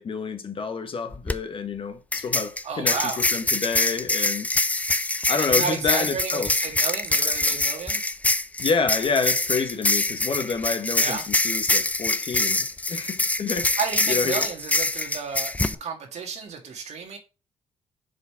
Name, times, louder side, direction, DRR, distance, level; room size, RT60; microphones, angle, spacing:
voice 1, 0.0-4.5 5.3-6.5 8.6-13.8 14.1-14.5, left 5 dB, 45° left, 1.1 m, -28 dB
sound 1, 1.1-1.4 2.1-15.8, left 2 dB, 10° left, 0.4 m, -24 dB
voice 2, 2.6-3.2 5.4-8.1 11.0-11.2 13.8-17.2, right 5 dB, 65° right, 1.6 m, -32 dB
5.1 x 4.1 x 5.6 m
cardioid pair, 85°, 12 cm